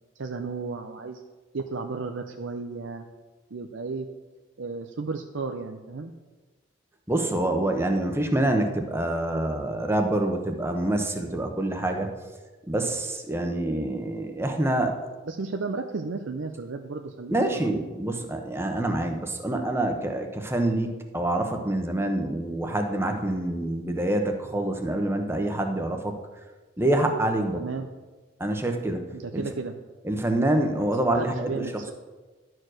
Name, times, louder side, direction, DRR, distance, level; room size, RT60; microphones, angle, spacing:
voice 1, 0.2-1.2 1.5-3.0 3.5-4.1 4.6-6.1 15.2-17.7 27.5-27.9 29.1-29.7 31.1-31.9, right 4 dB, 90° right, 5 dB, 0.6 m, -33 dB
voice 2, 7.1-12.1 12.7-15.0 17.3-26.1 26.8-27.7 28.4-29.4 30.0-31.6, right 1 dB, 15° right, 4 dB, 0.9 m, -26 dB
11.5 x 4.6 x 6.3 m, 1.3 s
head